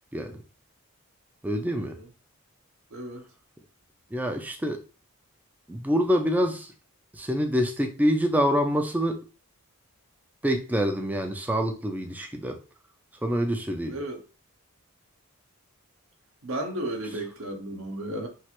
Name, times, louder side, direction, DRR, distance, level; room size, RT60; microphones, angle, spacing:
voice 1, 1.4-2.0 4.1-4.8 5.7-6.7 7.1-9.2 10.4-12.6 13.2-14.0 17.1-17.2, equal, 5° right, 0.3 m, -26 dB
voice 2, 2.9-3.2 13.9-14.2 16.4-18.3, right 1 dB, 65° right, 0.7 m, -33 dB
3.2 x 2.4 x 2.9 m
head